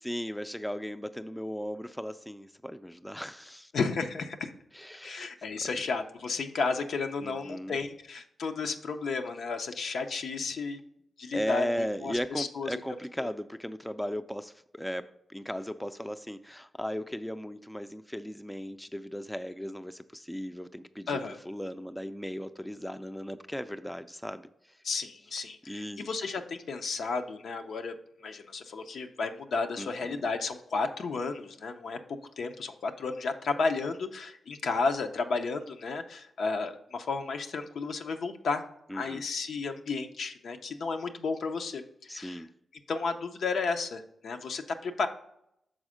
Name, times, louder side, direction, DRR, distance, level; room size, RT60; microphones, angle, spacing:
voice 1, 0.0-3.7 4.7-5.3 5.6-5.7 7.2-7.8 11.3-21.2 21.5-24.8 25.7-26.1 29.8-30.2 38.9-39.2 42.1-42.5, equal, 5° left, 11 dB, 0.4 m, -37 dB
voice 2, 3.7-4.5 5.0-10.8 11.2-12.8 13.2-13.3 21.1-21.4 24.8-27.9 28.2-32.0 32.4-38.6 38.9-42.4 42.9-45.1, left 4 dB, 75° left, 6 dB, 0.6 m, -33 dB
6.3 x 4.2 x 4.9 m, 0.77 s
cardioid pair, 60°, 0 cm